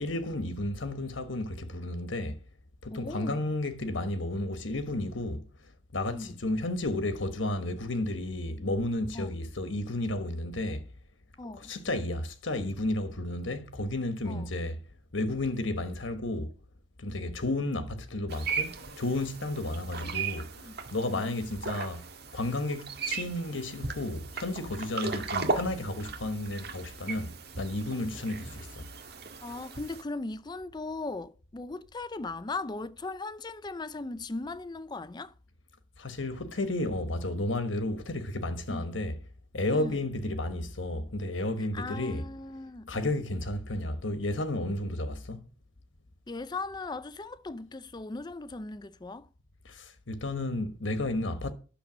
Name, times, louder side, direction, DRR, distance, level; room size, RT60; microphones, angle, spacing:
voice 1, 0.0-2.4 2.8-10.9 11.5-14.8 15.1-16.5 17.0-22.0 22.3-28.9 36.0-39.1 39.5-42.2 42.9-45.4 49.6-51.5, left 2 dB, 90° left, 1.2 m, -32 dB
voice 2, 2.9-3.4 6.1-6.4 9.1-9.4 11.4-11.7 14.3-14.5 20.0-20.8 21.1-21.3 27.9-28.2 29.4-35.3 38.7-38.9 39.7-40.0 41.7-43.1 46.3-49.3, left 3 dB, 25° left, 0.5 m, -38 dB
sound 1, 18.3-30.0, right 4 dB, 60° right, 1.7 m, -37 dB
10.5 x 6.7 x 6.2 m
head